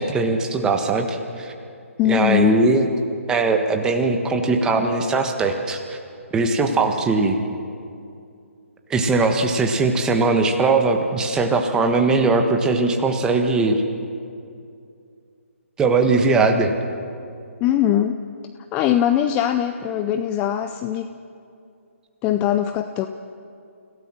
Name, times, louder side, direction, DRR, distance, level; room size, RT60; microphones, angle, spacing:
voice 1, 0.0-1.5 2.0-2.9 3.3-6.0 6.3-7.4 8.9-13.8 15.8-16.7, right 3 dB, 10° right, 4 dB, 1.4 m, -20 dB
voice 2, 2.0-2.6 17.6-18.2 18.7-21.2 22.2-23.1, left 11 dB, 15° left, 9 dB, 0.5 m, -21 dB
29.0 x 17.0 x 6.3 m, 2.5 s
figure-of-eight pair, 145°, 8 cm